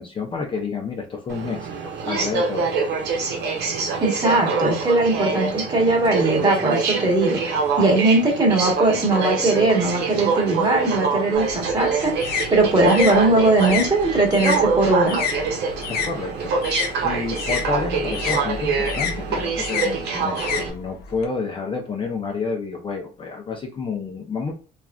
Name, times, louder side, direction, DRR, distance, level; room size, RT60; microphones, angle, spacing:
voice 1, 0.0-2.7 15.9-24.5, left 4 dB, 30° left, 2 dB, 0.6 m, -29 dB
Aircraft, 1.3-20.7, right 4 dB, 80° right, 0.9 m, -25 dB
voice 2, 4.0-15.2, right 2 dB, 25° right, 0 dB, 1.2 m, -20 dB
sound 1, 11.4-16.1 16.4-21.3, left 6 dB, 70° left, 0.6 m, -29 dB
3.1 x 2.4 x 2.3 m, 0.36 s
cardioid pair, 110°, 17 cm